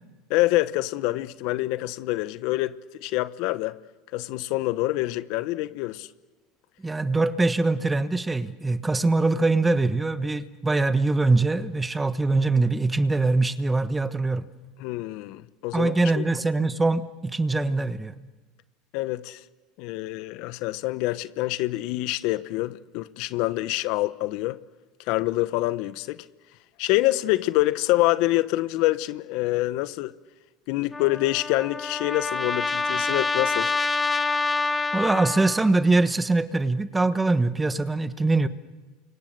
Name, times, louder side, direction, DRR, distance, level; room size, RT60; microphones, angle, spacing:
voice 1, 0.3-3.8 4.1-6.1 14.8-16.2 18.9-19.4 19.8-24.6 25.1-26.3 26.8-30.1 30.7-33.7, left 18 dB, 65° left, 1.0 m, -26 dB
voice 2, 6.8-14.4 15.7-18.1 34.9-38.5, right 3 dB, 10° right, 1.2 m, -23 dB
Trumpet, 30.9-35.7, left 3 dB, 15° left, 1.6 m, -27 dB
29.5 x 25.0 x 6.8 m
supercardioid pair, 110°, 0 cm